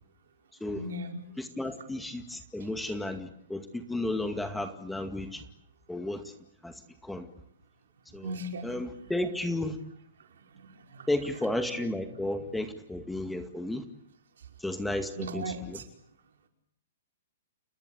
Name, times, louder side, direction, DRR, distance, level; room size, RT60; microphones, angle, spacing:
voice 1, 0.7-1.2 8.2-8.7 10.5-10.7 10.9-11.1 15.2-15.8, equal, 75° right, 4 dB, 5.5 m, -37 dB
voice 2, 1.4-5.4 5.9-6.2 6.6-6.7 7.0-7.3 8.1-8.4 8.6-9.8 11.1-13.8 14.6-15.8, left 1 dB, 5° left, 8 dB, 2.1 m, -33 dB
30.0 x 19.0 x 8.2 m, 0.70 s
hypercardioid pair, 130°, 0 cm